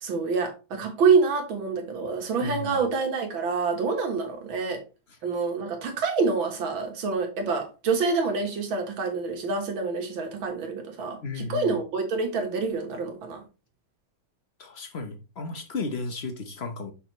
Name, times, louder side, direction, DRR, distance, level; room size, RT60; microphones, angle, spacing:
voice 1, 0.0-4.8 5.2-13.4, right 4 dB, 70° right, 2.2 m, -27 dB
voice 2, 2.4-2.8 11.2-11.7 14.6-16.9, left 3 dB, 45° left, 0.8 m, -34 dB
6.6 x 5.5 x 3.0 m
omnidirectional pair, 2.3 m